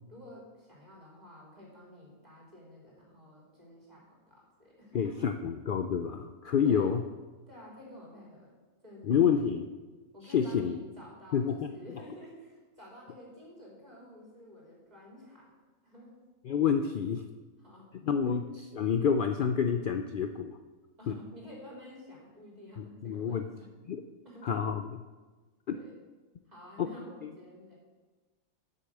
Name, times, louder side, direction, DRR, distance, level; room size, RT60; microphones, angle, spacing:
voice 1, 0.1-5.2 6.6-7.0 7.5-8.5 8.8-9.5 10.1-15.5 15.8-16.3 17.6-18.0 18.2-18.4 21.0-23.7 24.2-24.6 25.7-26.0 26.4-27.8, left 1 dB, 30° right, -4 dB, 3.3 m, -50 dB
voice 2, 4.9-7.0 9.0-9.6 10.3-10.8 11.3-11.7 16.5-17.2 18.0-18.5 18.7-20.6 21.1-21.2 22.8-23.5 23.9-24.0 24.4-24.8 25.7-25.8 26.8-26.9 27.2-27.3, left 7 dB, 70° left, 7 dB, 0.4 m, -28 dB
9.3 x 6.6 x 7.7 m, 1.3 s
omnidirectional pair, 1.5 m